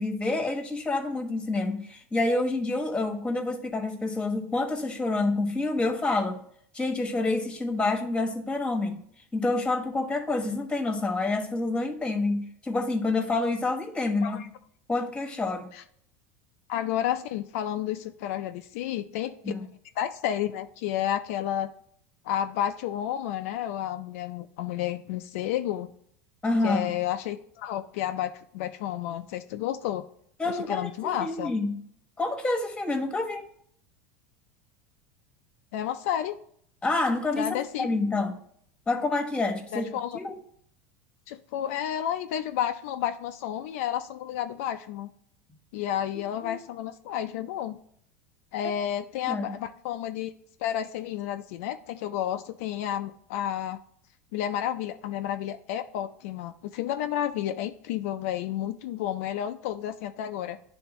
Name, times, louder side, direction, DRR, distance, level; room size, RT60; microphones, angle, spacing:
voice 1, 0.0-6.4 6.7-9.0 9.3-14.4 14.9-15.7 19.4-19.7 26.4-27.0 30.4-31.8 32.2-33.5 36.8-38.3 38.9-39.9 40.1-40.4 46.4-46.6 48.6-48.7 49.3-49.6, left 2 dB, 15° left, 4 dB, 1.2 m, -28 dB
voice 2, 16.7-19.5 20.0-21.7 22.2-25.9 26.6-30.1 30.5-31.5 35.7-36.4 37.3-37.9 39.7-40.2 41.3-45.1 45.7-47.8 48.5-50.3 50.6-53.8 54.3-60.6, left 11 dB, 70° left, 7 dB, 0.4 m, -31 dB
10.0 x 3.5 x 3.0 m, 0.65 s
supercardioid pair, 105°, 8 cm